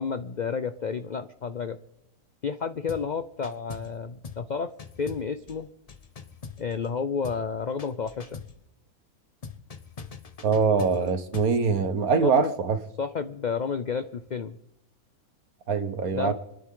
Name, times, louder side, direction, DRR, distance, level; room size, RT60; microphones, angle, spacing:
voice 1, 0.0-1.8 2.4-4.7 5.0-5.7 6.6-8.4 12.2-12.5 13.0-14.6 16.1-16.3, left 5 dB, 85° left, 10 dB, 0.4 m, -31 dB
sound 1, 2.9-3.1 3.4-4.0 4.2-4.5 4.8-7.0 7.2-7.5 7.8-8.6 9.4-11.6, left 5 dB, 35° left, 0.6 m, -42 dB
voice 2, 10.4-12.8 15.7-16.3, right 5 dB, 75° right, 9 dB, 1.7 m, -23 dB
29.0 x 10.0 x 3.7 m, 0.89 s
omnidirectional pair, 1.5 m